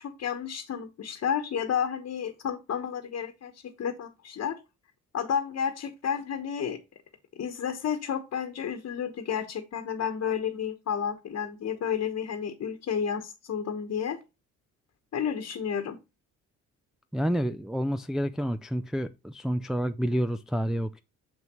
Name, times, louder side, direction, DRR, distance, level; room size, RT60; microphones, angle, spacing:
voice 1, 0.0-4.6 5.1-6.8 7.4-14.2 15.1-16.0, left 7 dB, 55° left, 1.2 m, -31 dB
voice 2, 17.1-21.0, equal, ahead, 0.4 m, -29 dB
7.3 x 6.0 x 3.0 m
cardioid pair, 90°, 30 cm